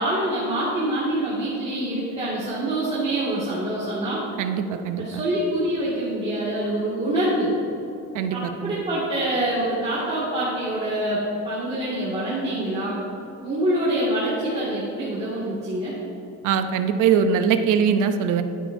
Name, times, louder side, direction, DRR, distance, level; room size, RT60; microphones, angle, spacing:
voice 1, 0.0-4.2 5.0-7.5 8.3-13.0 13.4-15.9, right 1 dB, 20° right, -10 dB, 2.0 m, -25 dB
voice 2, 4.4-5.2 8.1-8.7 16.4-18.4, right 7 dB, 75° right, 8 dB, 0.7 m, -22 dB
11.0 x 8.9 x 2.7 m, 2.8 s
cardioid pair, 145°, 31 cm